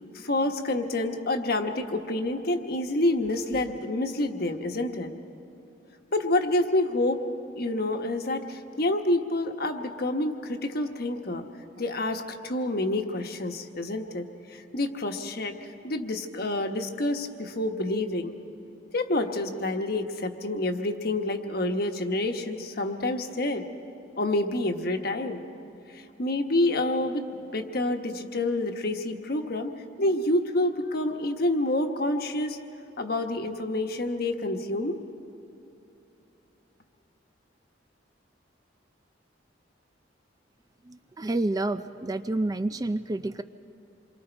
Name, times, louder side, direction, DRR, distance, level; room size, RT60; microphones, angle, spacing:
voice 1, 0.1-5.1 6.1-7.2 7.6-11.4 11.8-14.2 14.5-15.6 15.8-18.3 18.9-23.6 24.2-25.4 25.9-27.3 27.5-29.7 30.0-32.6 33.0-35.0, left 1 dB, 55° left, 5 dB, 1.2 m, -28 dB
voice 2, 40.8-43.4, right 2 dB, 20° right, 10 dB, 0.4 m, -29 dB
27.5 x 23.5 x 4.5 m, 2.9 s
head